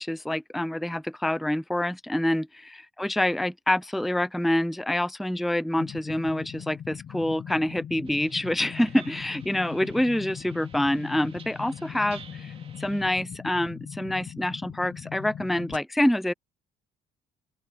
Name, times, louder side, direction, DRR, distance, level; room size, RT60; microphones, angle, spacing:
voice 1, 0.0-16.3, left 1 dB, ahead, 0.3 m, -27 dB
sound 1, 5.8-15.8, left 9 dB, 45° left, 0.9 m, -40 dB
sound 2, 8.0-13.2, right 6 dB, 35° right, 2.7 m, -51 dB
open air
cardioid pair, 110°, 17 cm